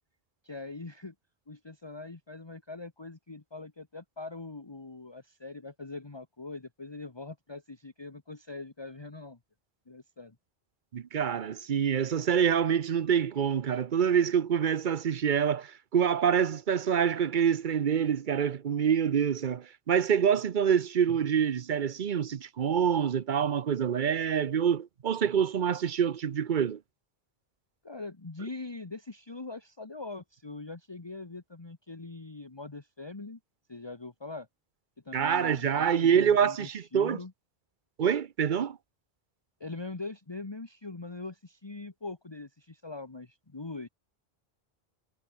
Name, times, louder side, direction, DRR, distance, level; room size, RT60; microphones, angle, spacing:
voice 1, 0.4-1.1 1.5-9.4 9.9-10.4 27.8-33.4 33.7-34.5 35.0-37.3 39.6-43.9, left 3 dB, 25° left, 1.3 m, -42 dB
voice 2, 10.9-26.8 35.1-37.2 38.0-38.8, right 8 dB, 55° right, 0.8 m, -26 dB
omnidirectional pair, 1.0 m